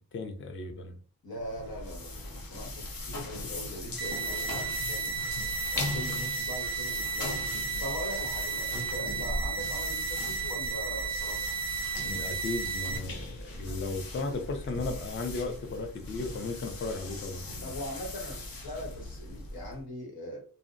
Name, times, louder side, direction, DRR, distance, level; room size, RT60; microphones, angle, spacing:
voice 1, 0.1-1.0 12.0-17.5, left 3 dB, 35° left, 5 dB, 0.4 m, -35 dB
voice 2, 1.2-5.1 5.7-7.5 7.8-11.6 17.6-20.4, left 1 dB, 85° left, 0 dB, 1.1 m, -41 dB
sound 1, 1.4-19.8, left 2 dB, 70° left, 0.7 m, -39 dB
sound 2, 4.0-13.0, right 6 dB, 30° right, 0.4 m, -34 dB
2.5 x 2.0 x 2.4 m, 0.40 s
wide cardioid pair, 170°, 36 cm